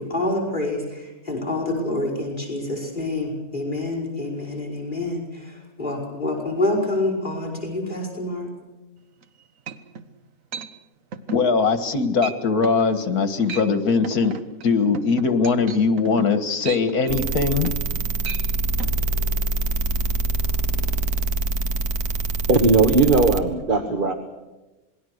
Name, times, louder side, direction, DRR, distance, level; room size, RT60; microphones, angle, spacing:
voice 1, 0.0-8.5, left 2 dB, 30° left, 0 dB, 5.8 m, -27 dB
sound 1, 9.2-9.3 9.7-10.1 10.5-10.7 11.1-11.5 11.8-12.0 12.2-12.4 12.6-12.9 13.3-13.7 14.0-17.9 18.2-18.4 18.8-18.9, right 5 dB, 60° right, 1.5 m, -35 dB
voice 2, 11.3-14.3 14.6-17.7 23.5-23.6 23.9-24.0, left 4 dB, 80° left, 10 dB, 2.1 m, -21 dB
sound 2, 17.1-23.4, right 2 dB, 80° right, 1.7 m, -25 dB
voice 3, 22.5-24.1, right 3 dB, 35° right, 6 dB, 1.5 m, -18 dB
27.0 x 21.0 x 6.5 m, 1.1 s
omnidirectional pair, 1.6 m